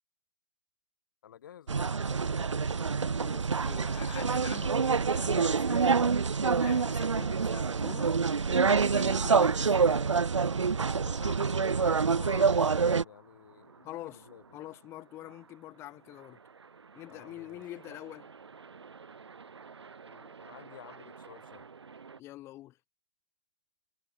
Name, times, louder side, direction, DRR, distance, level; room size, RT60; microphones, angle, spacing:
voice 1, 1.2-2.9 9.0-9.3 11.0-14.4 17.0-17.6 20.0-21.7, left 10 dB, 45° left, 7.8 m, -51 dB
sound 1, 1.7-13.0, right 5 dB, 85° right, 0.4 m, -26 dB
voice 2, 3.2-5.9 6.4-8.1 8.5-10.0 13.8-16.4 16.9-18.3 22.2-22.8, left 15 dB, 15° left, 1.6 m, -45 dB
sound 2, 10.9-22.2, right 5 dB, 65° right, 3.7 m, -55 dB
figure-of-eight pair, 135°, 15 cm